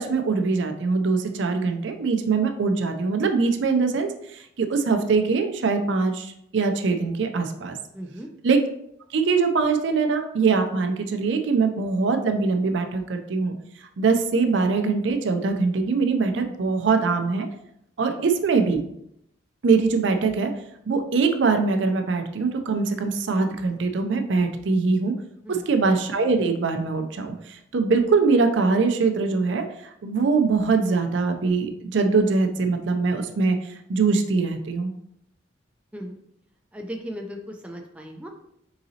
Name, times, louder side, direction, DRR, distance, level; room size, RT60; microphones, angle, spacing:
voice 1, 0.0-7.8 8.4-8.6 9.1-13.5 14.0-17.5 18.0-18.8 19.6-20.5 20.9-25.1 25.7-34.9, right 4 dB, 65° right, 6 dB, 0.5 m, -22 dB
voice 2, 7.9-8.3 18.1-18.2 25.4-25.7 35.9-36.2 36.7-38.3, equal, 5° right, 1 dB, 0.3 m, -37 dB
3.9 x 3.8 x 2.8 m, 0.75 s
head